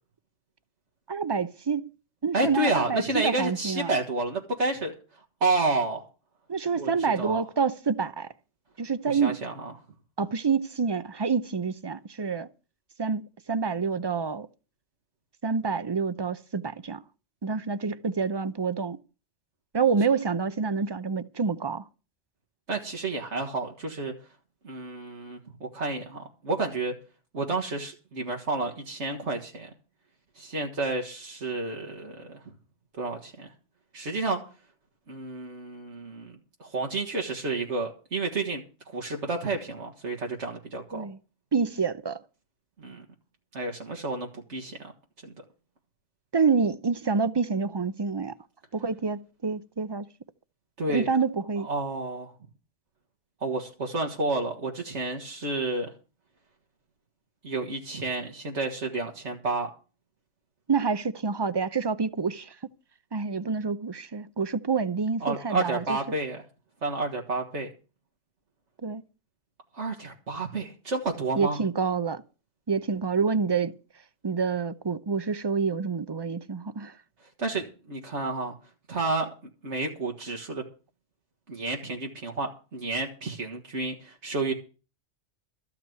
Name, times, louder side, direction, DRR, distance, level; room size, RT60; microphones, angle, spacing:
voice 1, 1.1-1.9 2.2-3.9 6.5-8.3 8.8-9.4 10.2-12.5 13.0-13.2 13.5-14.5 15.4-17.0 17.4-19.0 19.7-21.8 40.9-41.2 41.5-42.2 46.3-48.4 48.7-50.1 50.9-51.7 60.7-62.5 63.1-66.0 68.8-69.0 71.4-72.2 72.7-73.7 74.2-76.9, right 5 dB, 30° right, 0.5 m, -27 dB
voice 2, 2.3-4.9 5.4-6.0 6.8-6.9 7.2-7.4 9.1-9.7 22.7-24.1 24.6-26.9 27.3-29.7 30.4-32.4 33.0-33.5 33.9-34.4 35.1-36.3 36.6-38.6 38.9-41.1 42.8-43.0 43.5-44.8 45.2-45.3 50.8-51.1 51.6-52.3 53.4-55.9 57.4-59.7 65.2-66.4 66.8-67.7 69.7-71.6 77.4-78.5 78.9-79.3 79.6-80.6 81.5-84.5, right 3 dB, 80° right, 2.1 m, -30 dB
14.0 x 5.8 x 9.3 m
omnidirectional pair, 1.2 m